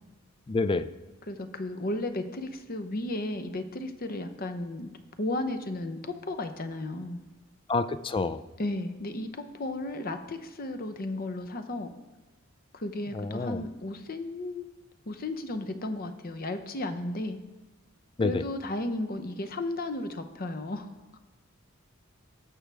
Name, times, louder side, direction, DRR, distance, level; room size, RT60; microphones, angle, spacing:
voice 1, 0.5-0.9 7.7-8.4 13.1-13.6 18.2-18.4, left 3 dB, 25° left, 13 dB, 0.4 m, -28 dB
voice 2, 1.3-4.9 5.2-7.2 8.6-11.9 12.7-14.7 15.1-17.4 18.2-20.9, left 2 dB, 45° left, 8 dB, 0.8 m, -34 dB
18.0 x 6.1 x 3.4 m, 1.2 s
head